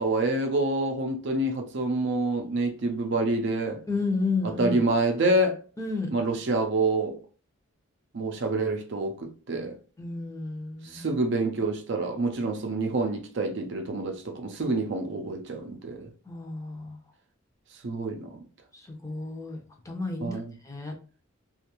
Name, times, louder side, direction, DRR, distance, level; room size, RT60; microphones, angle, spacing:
voice 1, 0.0-3.8 4.4-5.6 6.1-7.2 8.1-9.8 10.8-16.1 17.8-18.4 20.2-20.5, right 2 dB, 60° right, 0.5 m, -27 dB
voice 2, 3.9-4.8 5.8-6.1 10.0-11.1 16.3-17.0 18.9-20.4 20.7-20.9, left 3 dB, 15° left, 0.5 m, -31 dB
2.6 x 2.4 x 2.9 m
head